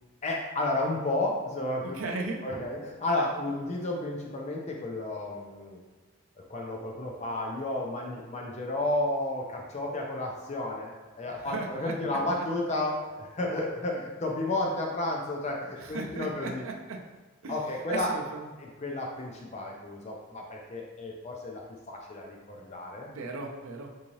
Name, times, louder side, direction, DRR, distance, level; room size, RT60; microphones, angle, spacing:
voice 1, 0.2-2.0 2.4-5.8 6.5-16.6 17.5-18.1 18.6-21.6 21.9-23.1, left 2 dB, 35° left, 0 dB, 0.4 m, -32 dB
voice 2, 1.8-2.4 11.4-12.2 15.8-17.0 17.4-17.6 17.9-18.5 23.0-23.9, right 3 dB, 80° right, 1 dB, 0.4 m, -36 dB
3.6 x 2.7 x 3.0 m, 1.2 s
head